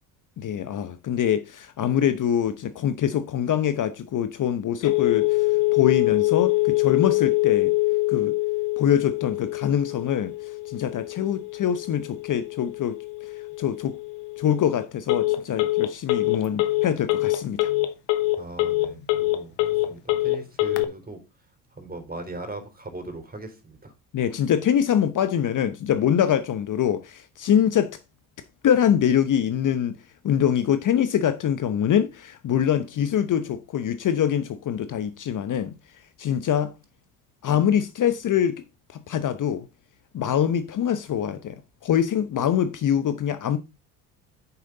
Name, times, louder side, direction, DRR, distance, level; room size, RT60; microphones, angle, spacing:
voice 1, 0.4-7.7 8.1-8.4 8.8-12.9 13.6-14.0 14.4-17.7 24.1-28.0 28.6-29.9 30.2-35.8 36.2-36.7 37.4-38.6 38.9-39.7 40.1-41.6 41.8-43.6, left 9 dB, 40° left, 1.0 m, -24 dB
Telephone, 4.8-20.8, left 18 dB, 70° left, 1.3 m, -24 dB
voice 2, 18.4-21.2 21.8-23.9, right 2 dB, 20° right, 4.1 m, -39 dB
9.4 x 6.9 x 4.0 m
hypercardioid pair, 65°, 47 cm